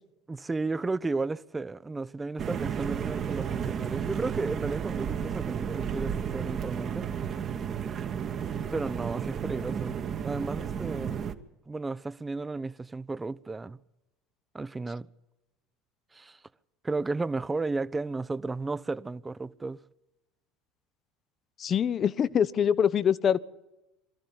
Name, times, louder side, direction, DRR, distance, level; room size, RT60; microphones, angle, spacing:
voice 1, 0.3-7.1 8.7-10.0 10.2-11.2 11.7-13.8 14.5-15.1 16.1-16.4 16.8-19.8, right 3 dB, 15° right, 0.6 m, -33 dB
sound 1, 2.4-11.4, right 8 dB, 40° right, 1.2 m, -33 dB
voice 2, 21.6-23.4, left 8 dB, 40° left, 0.7 m, -24 dB
23.5 x 14.0 x 8.7 m
figure-of-eight pair, 70°, 0 cm